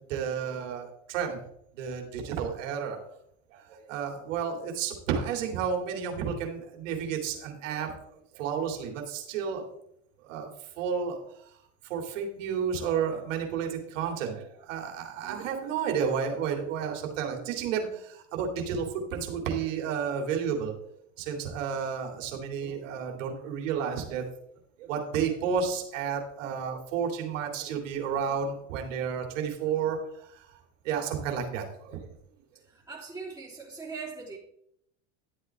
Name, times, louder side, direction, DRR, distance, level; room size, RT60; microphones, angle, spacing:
voice 1, 0.1-1.4 1.8-3.0 3.5-9.6 10.2-11.5 11.8-20.7 21.2-24.2 24.8-32.0, right 7 dB, 80° right, 3 dB, 2.9 m, -32 dB
voice 2, 32.6-34.4, right 4 dB, 5° right, -8 dB, 3.7 m, -40 dB
12.5 x 8.2 x 3.6 m, 0.72 s
supercardioid pair, 105°, 37 cm